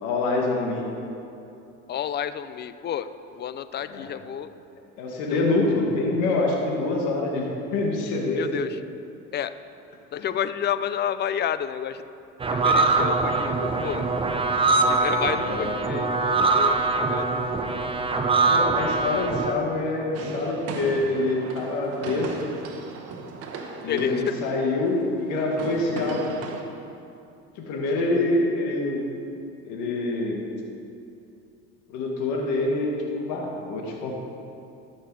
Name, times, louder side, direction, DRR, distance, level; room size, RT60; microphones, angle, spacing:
voice 1, 0.0-0.8 3.9-4.1 5.0-8.5 15.4-15.7 18.5-22.4 23.8-26.4 27.5-29.0 29.6-30.4 31.9-34.2, left 2 dB, 75° left, -1 dB, 1.7 m, -26 dB
voice 2, 1.9-4.5 8.3-8.8 9.3-9.5 10.1-12.1 12.5-14.1 14.9-17.4 23.8-24.4, left 9 dB, 35° left, 13 dB, 0.4 m, -30 dB
sound 1, 12.4-19.5, right 3 dB, 20° right, 0.7 m, -23 dB
sound 2, 20.1-26.6, right 4 dB, 55° right, 1.1 m, -37 dB
13.0 x 6.6 x 4.7 m, 2.7 s
supercardioid pair, 100°, 30 cm